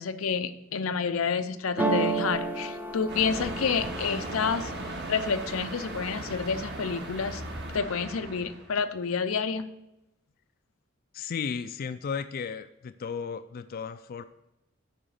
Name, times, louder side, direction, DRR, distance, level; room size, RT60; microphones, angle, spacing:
voice 1, 0.0-4.7 5.1-7.4 7.7-9.7, left 5 dB, 90° left, 10 dB, 0.6 m, -29 dB
sound 1, 1.8-5.6 6.1-6.7 7.0-7.8, right 3 dB, 10° right, 0.7 m, -32 dB
sound 2, 3.1-8.7, right 2 dB, 55° right, 1.7 m, -37 dB
voice 2, 11.1-14.2, left 6 dB, 45° left, 10 dB, 0.4 m, -34 dB
8.8 x 5.1 x 6.5 m, 0.89 s
head